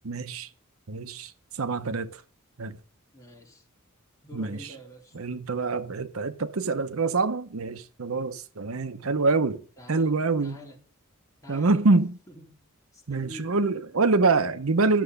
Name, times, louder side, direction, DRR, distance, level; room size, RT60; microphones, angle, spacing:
voice 1, 0.0-0.5 0.9-1.3 1.6-2.2 2.6-2.8 4.3-4.6 5.1-9.6 9.9-10.6 11.5-12.2 13.1-15.0, right 3 dB, 75° right, 0.8 m, -25 dB
voice 2, 3.1-3.6 4.2-5.2 9.8-10.8 11.4-12.0 12.3-12.6 12.9-13.6, equal, 15° left, 3.3 m, -47 dB
12.0 x 7.0 x 6.5 m
head